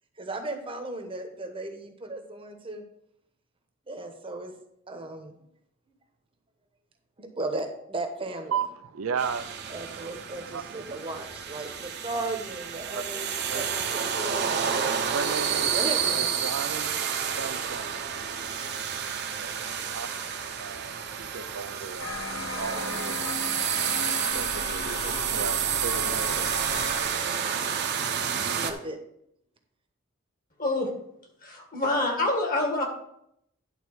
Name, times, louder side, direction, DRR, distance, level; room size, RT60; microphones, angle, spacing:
voice 1, 0.2-2.8 3.9-4.5 4.9-5.3 7.2-8.6 9.7-14.7 15.7-16.3 28.5-29.0, right 2 dB, 25° right, 1.0 m, -36 dB
voice 2, 8.5-9.5 10.5-10.9 12.9-13.0 13.5-13.8 15.1-15.7 16.1-17.0 17.4-18.1 18.9-20.3 20.6-23.4 24.3-26.6, right 6 dB, 90° right, 0.6 m, -35 dB
sound 1, 9.2-28.7, right 7 dB, 55° right, 0.9 m, -30 dB
sound 2, 22.0-27.0, left 4 dB, 80° left, 1.0 m, -36 dB
voice 3, 30.6-30.9 31.4-32.8, left 2 dB, 45° left, 2.0 m, -26 dB
10.5 x 4.0 x 6.3 m
head